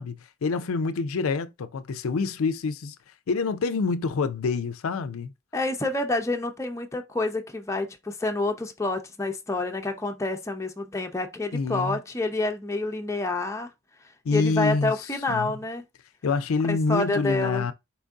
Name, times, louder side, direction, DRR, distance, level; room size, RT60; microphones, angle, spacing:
voice 1, 0.0-3.0 3.3-5.3 11.5-12.0 14.3-14.9 15.3-15.5 16.2-17.7, left 4 dB, 80° left, 0.4 m, -26 dB
voice 2, 5.5-13.7 14.3-15.8 16.7-17.7, left 2 dB, 15° left, 0.5 m, -28 dB
4.3 x 2.6 x 3.5 m
head